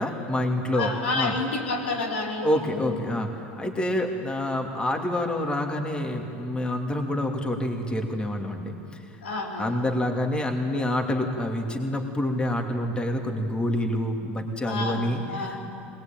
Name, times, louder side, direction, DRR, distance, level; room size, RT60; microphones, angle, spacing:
voice 1, 0.0-1.4 2.4-8.7 9.6-15.6, left 1 dB, 15° left, 3 dB, 2.7 m, -27 dB
voice 2, 0.7-2.8 9.2-9.8 14.6-15.6, left 3 dB, 90° left, -2 dB, 4.1 m, -30 dB
20.5 x 20.0 x 9.1 m, 2.7 s
hypercardioid pair, 90°, 6 cm